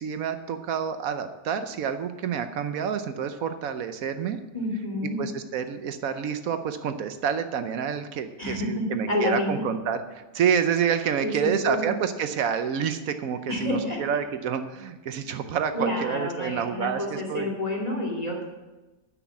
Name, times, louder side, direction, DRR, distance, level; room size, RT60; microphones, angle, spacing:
voice 1, 0.0-4.4 5.2-17.5, right 7 dB, 75° right, 9 dB, 1.1 m, -28 dB
voice 2, 4.5-5.2 8.4-9.6 11.2-11.8 13.5-14.0 15.7-18.4, left 1 dB, 25° left, -3 dB, 2.5 m, -29 dB
9.6 x 6.1 x 8.2 m, 1.1 s
omnidirectional pair, 1.5 m